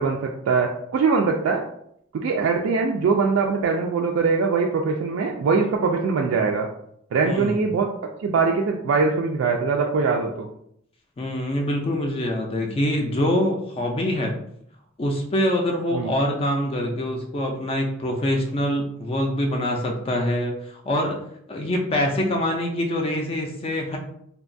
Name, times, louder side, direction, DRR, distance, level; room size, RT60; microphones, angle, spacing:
voice 1, 0.0-1.6 2.1-6.7 7.1-7.9 8.2-10.5 15.9-16.1, right 4 dB, 80° right, 1 dB, 0.3 m, -22 dB
voice 2, 7.2-7.7 11.2-14.3 15.0-21.2 21.5-24.0, left 1 dB, 30° left, 2 dB, 0.4 m, -24 dB
2.8 x 2.2 x 2.5 m, 0.70 s
head